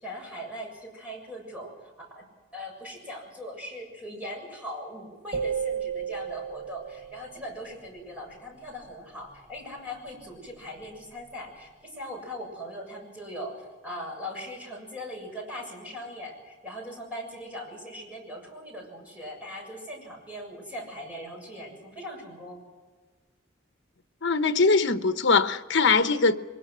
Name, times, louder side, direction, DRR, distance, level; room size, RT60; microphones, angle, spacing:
voice 1, 0.0-2.2 2.5-22.6, equal, 5° right, 7.3 m, -40 dB
sound 1, 5.3-7.6, right 7 dB, 30° right, 1.5 m, -33 dB
voice 2, 24.2-26.4, left 4 dB, 60° left, 1.0 m, -22 dB
23.5 x 21.5 x 6.2 m
head